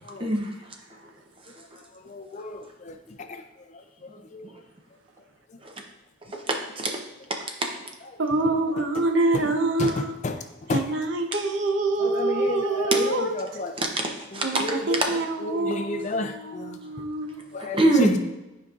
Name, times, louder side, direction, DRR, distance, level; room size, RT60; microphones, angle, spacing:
voice 1, 0.2-0.5 5.6-5.7 6.3-7.0 7.6-7.7 11.3-11.4 12.9-13.0 13.8-14.7 14.9-15.2 17.7-18.2, right 2 dB, 25° right, 2 dB, 0.6 m, -24 dB
voice 2, 2.1-2.6 2.9-3.0 4.3-4.4 9.8-9.9 10.2-10.4 10.7-10.8 12.0-13.7 14.6-14.8 15.4-16.8 17.5-18.2, left 2 dB, 35° left, 7 dB, 0.4 m, -30 dB
voice 3, 8.2-10.1 10.7-13.4 14.4-17.4, right 2 dB, 65° right, 4 dB, 0.7 m, -26 dB
11.0 x 5.1 x 2.4 m, 1.0 s
head